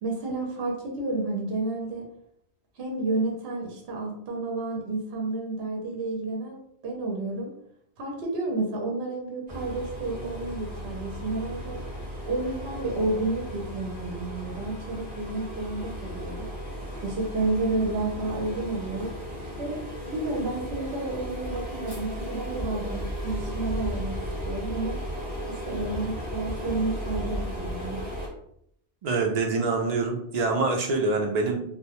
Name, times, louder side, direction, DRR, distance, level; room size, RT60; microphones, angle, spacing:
voice 1, 0.0-2.1 2.8-7.5 8.0-11.8 12.3-16.5 17.0-19.1 19.6-24.1 24.4-25.0 25.5-28.0, right 2 dB, 70° right, -1 dB, 0.8 m, -31 dB
sound 1, 9.5-28.3, equal, 10° right, 0.7 m, -35 dB
voice 2, 29.0-31.6, right 3 dB, 55° right, 2 dB, 0.4 m, -25 dB
2.1 x 2.0 x 2.8 m, 0.70 s
omnidirectional pair, 1.1 m